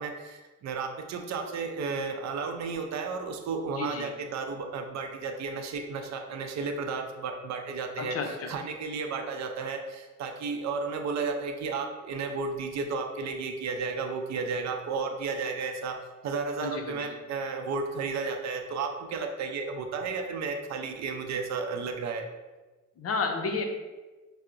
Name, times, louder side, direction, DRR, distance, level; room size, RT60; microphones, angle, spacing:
voice 1, 0.0-16.0 16.2-22.3, right 4 dB, 65° right, 5 dB, 0.5 m, -33 dB
voice 2, 3.8-4.1 8.0-8.5 16.6-17.0 23.0-23.6, left 4 dB, 50° left, 4 dB, 0.6 m, -31 dB
5.5 x 2.0 x 2.5 m, 1.2 s
cardioid pair, 90°, 30 cm